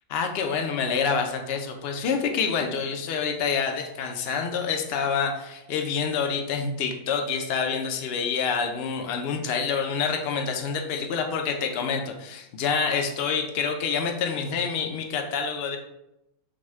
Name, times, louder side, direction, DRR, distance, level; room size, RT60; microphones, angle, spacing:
voice 1, 0.1-15.8, left 6 dB, 70° left, 4 dB, 0.5 m, -27 dB
4.8 x 2.1 x 4.6 m, 0.88 s
omnidirectional pair, 1.7 m